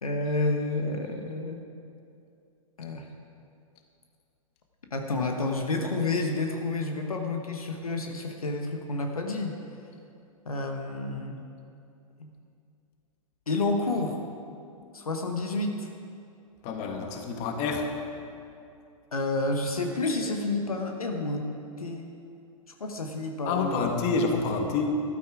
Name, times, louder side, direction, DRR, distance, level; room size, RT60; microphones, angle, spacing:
voice 1, 0.0-1.6 2.8-3.1 4.9-9.5 10.4-11.4 12.2-12.3 13.5-14.2 14.9-15.9 19.1-21.5 21.8-22.1 22.8-23.9, left 2 dB, 80° left, 3 dB, 1.3 m, -30 dB
voice 2, 16.6-17.9 23.4-24.9, left 4 dB, 35° left, 3 dB, 1.8 m, -28 dB
13.5 x 12.0 x 4.8 m, 2.5 s
figure-of-eight pair, 110°, 18 cm